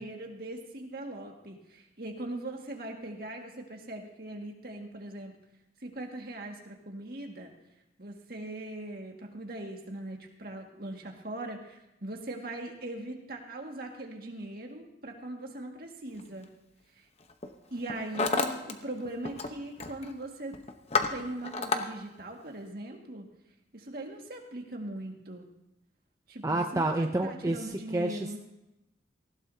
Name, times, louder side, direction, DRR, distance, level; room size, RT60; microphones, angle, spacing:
voice 1, 0.0-5.4 5.8-7.5 8.0-16.5 17.7-20.6 21.1-23.3 23.7-25.5 26.3-28.4, right 1 dB, 55° right, 1 dB, 1.9 m, -40 dB
Hammer, 16.2-16.4 17.2-17.5 17.8-18.7 19.0-19.5 19.8-20.1 20.5-21.8, left 4 dB, 35° left, 0.9 m, -30 dB
voice 2, 26.4-28.4, right 2 dB, 15° right, 3 dB, 0.5 m, -29 dB
19.0 x 15.5 x 2.8 m, 0.91 s
head